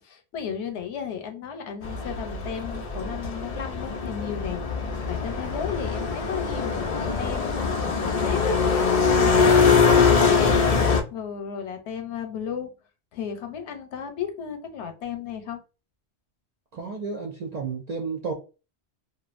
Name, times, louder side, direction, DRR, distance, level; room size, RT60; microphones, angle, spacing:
voice 1, 0.0-4.6 5.1-10.6 11.1-12.7 13.1-15.6, left 7 dB, 85° left, 0.9 m, -34 dB
sound 1, 1.8-11.0, left 5 dB, 60° left, 0.4 m, -22 dB
voice 2, 16.7-18.3, right 4 dB, 60° right, 0.4 m, -32 dB
2.5 x 2.2 x 2.4 m
omnidirectional pair, 1.1 m